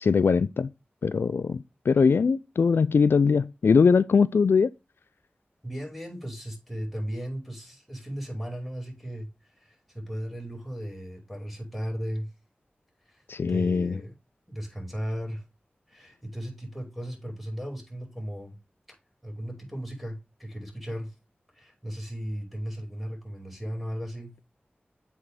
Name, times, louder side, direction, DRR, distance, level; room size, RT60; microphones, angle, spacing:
voice 1, 0.0-0.7 1.0-4.7 13.3-13.9, left 5 dB, 85° left, 0.3 m, -21 dB
voice 2, 5.6-9.3 9.6-12.3 13.1-14.1 14.5-15.4 15.9-18.6 19.2-21.1 21.5-24.3, equal, ahead, 5.2 m, -36 dB
8.2 x 4.3 x 5.0 m
cardioid pair, 45°, 4 cm